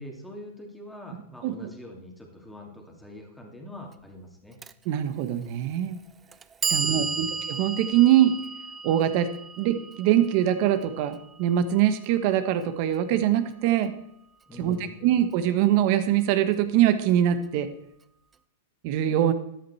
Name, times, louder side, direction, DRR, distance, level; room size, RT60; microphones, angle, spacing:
voice 1, 0.0-4.6 6.6-7.3 14.5-15.1, left 1 dB, 5° left, 1 dB, 2.5 m, -44 dB
Clock, 4.6-4.7 5.7-5.8 6.3-12.4, right 5 dB, 20° right, 0.5 m, -34 dB
voice 2, 4.8-6.0 6.7-8.4 8.8-9.3 9.6-13.9 14.6-14.8 15.0-17.7 18.8-19.3, right 11 dB, 50° right, 10 dB, 1.3 m, -23 dB
13.0 x 9.9 x 4.3 m, 0.79 s
hypercardioid pair, 125°, 0 cm